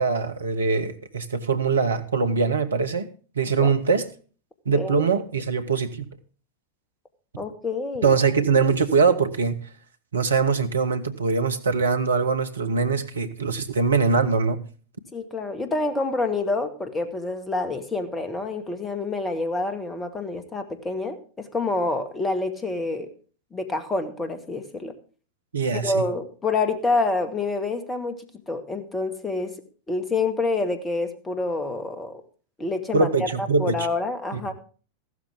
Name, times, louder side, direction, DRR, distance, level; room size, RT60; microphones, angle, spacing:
voice 1, 0.0-3.1 3.3-4.1 4.6-6.1 8.0-9.6 10.1-14.6 25.5-26.0 32.9-33.9 34.3-34.4, right 4 dB, 70° right, 9 dB, 1.3 m, -22 dB
voice 2, 4.7-5.1 7.4-8.1 15.1-23.1 23.5-24.9 25.7-28.2 28.5-29.5 29.9-32.2 32.6-34.5, left 3 dB, 15° left, 8 dB, 2.0 m, -27 dB
14.5 x 12.5 x 3.6 m, 0.38 s
figure-of-eight pair, 90°, 0 cm